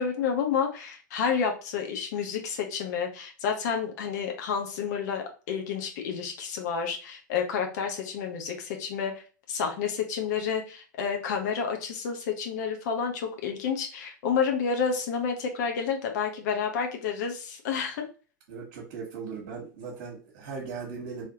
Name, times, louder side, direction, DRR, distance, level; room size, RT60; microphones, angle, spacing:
voice 1, 0.0-18.0, left 6 dB, 60° left, 3 dB, 1.0 m, -30 dB
voice 2, 18.5-21.3, right 5 dB, 60° right, -5 dB, 1.3 m, -38 dB
3.3 x 3.2 x 2.8 m, 0.36 s
figure-of-eight pair, 90°, 10 cm